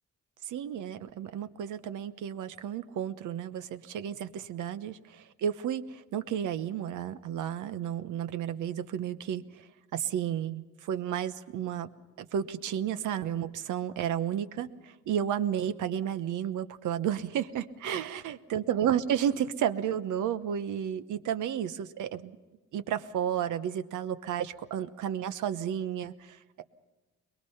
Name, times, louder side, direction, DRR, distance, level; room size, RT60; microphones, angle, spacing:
voice 1, 0.5-9.4 9.9-11.9 12.2-22.4 22.7-26.6, right 9 dB, 80° right, 12 dB, 1.1 m, -32 dB
22.5 x 22.0 x 5.7 m, 1.2 s
cardioid pair, 90°, 30 cm